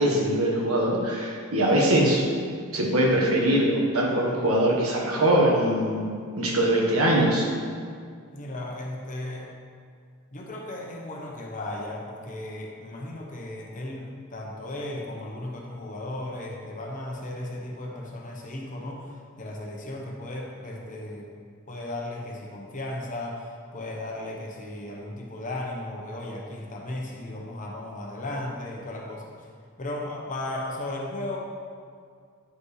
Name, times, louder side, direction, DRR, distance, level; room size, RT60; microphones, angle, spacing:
voice 1, 0.0-2.2 2.7-7.5, right 1 dB, 75° right, -2 dB, 1.4 m, -22 dB
voice 2, 8.3-9.5 10.3-21.3 21.7-29.3 29.8-31.4, left 1 dB, 40° left, -1 dB, 1.0 m, -35 dB
9.5 x 5.1 x 3.3 m, 2.2 s
head